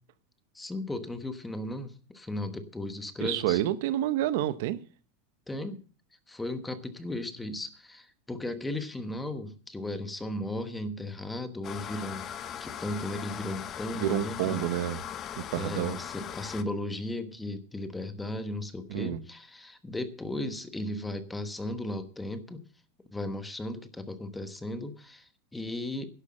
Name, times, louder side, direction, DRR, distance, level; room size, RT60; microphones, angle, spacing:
voice 1, 0.5-3.6 5.5-5.8 6.3-12.3 12.6-14.7 15.4-22.6 23.1-26.1, left 1 dB, 5° left, 1.2 m, -36 dB
voice 2, 3.2-4.8 13.9-15.0 15.4-16.0 18.9-19.2, right 13 dB, 65° right, 0.9 m, -29 dB
sound 1, 11.6-16.6, left 9 dB, 30° left, 0.8 m, -39 dB
11.5 x 8.1 x 7.6 m
supercardioid pair, 150°, 0 cm